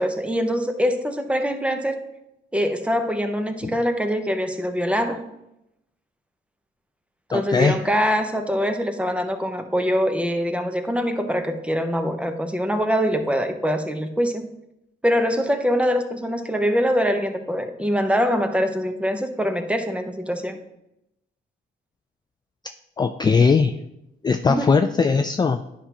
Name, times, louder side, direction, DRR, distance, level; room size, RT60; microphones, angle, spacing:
voice 1, 0.0-2.0 2.5-5.2 7.3-14.4 15.0-20.6 24.5-24.7, equal, 5° right, 7 dB, 0.8 m, -23 dB
voice 2, 7.3-7.8 23.0-23.8 24.2-25.6, left 5 dB, 20° left, 7 dB, 0.4 m, -19 dB
9.9 x 5.5 x 2.9 m, 0.86 s
cardioid pair, 90°, 20 cm